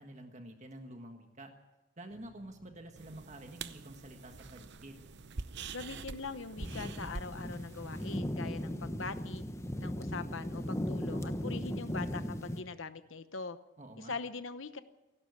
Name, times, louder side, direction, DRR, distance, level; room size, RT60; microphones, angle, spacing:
voice 1, 0.0-1.5 2.0-5.0 13.8-14.2, right 1 dB, 35° right, 5 dB, 1.6 m, -49 dB
sound 1, 2.1-10.7, right 4 dB, 35° left, 4.3 m, -63 dB
sound 2, 3.0-8.2, right 4 dB, 55° right, 0.8 m, -46 dB
voice 2, 5.7-9.4 9.8-13.6 14.0-14.8, left 4 dB, 65° left, 11 dB, 0.9 m, -42 dB
sound 3, 6.6-12.6, equal, 15° left, 1.0 m, -37 dB
28.5 x 12.0 x 8.3 m, 1.0 s
head